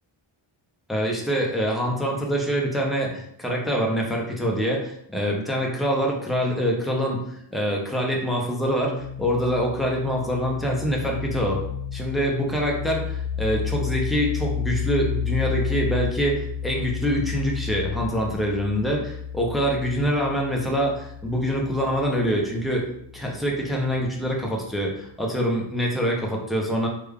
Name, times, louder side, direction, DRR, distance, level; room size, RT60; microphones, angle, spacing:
voice 1, 0.9-7.2 7.5-11.6 11.9-22.9 23.1-26.9, equal, ahead, -1 dB, 0.5 m, -25 dB
sound 1, 8.6-24.1, left 7 dB, 35° right, 1.0 m, -32 dB
3.3 x 2.2 x 3.4 m, 0.71 s
wide cardioid pair, 145°, 50 cm